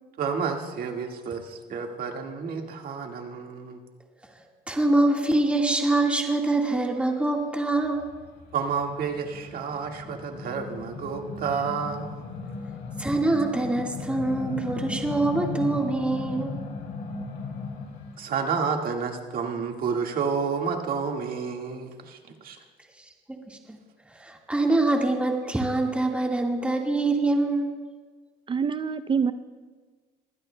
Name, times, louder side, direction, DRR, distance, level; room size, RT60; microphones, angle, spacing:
voice 1, 0.2-3.8 8.5-12.2 18.2-22.6, right 5 dB, 60° right, 1.8 m, -30 dB
voice 2, 4.7-8.1 13.0-16.5 23.3-23.8 24.1-27.8, right 2 dB, 5° right, 1.7 m, -24 dB
sound 1, 7.8-18.2, left 4 dB, 75° left, 3.7 m, -36 dB
voice 3, 28.5-29.3, right 6 dB, 30° right, 0.5 m, -25 dB
22.5 x 16.0 x 2.2 m
cardioid pair, 110°, 17 cm